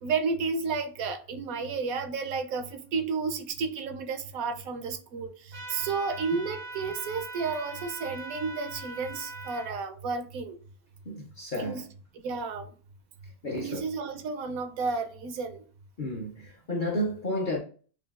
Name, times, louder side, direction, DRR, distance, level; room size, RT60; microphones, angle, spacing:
voice 1, 0.0-5.3 5.7-10.6 11.6-11.8 12.2-12.6 13.5-15.6, right 4 dB, 75° right, 1.0 m, -32 dB
sound 1, 5.5-9.7, right 2 dB, 25° right, 0.5 m, -41 dB
voice 2, 11.1-11.8 13.4-13.8 16.0-17.6, left 1 dB, 50° left, 0.6 m, -31 dB
6.2 x 2.3 x 2.3 m
omnidirectional pair, 1.6 m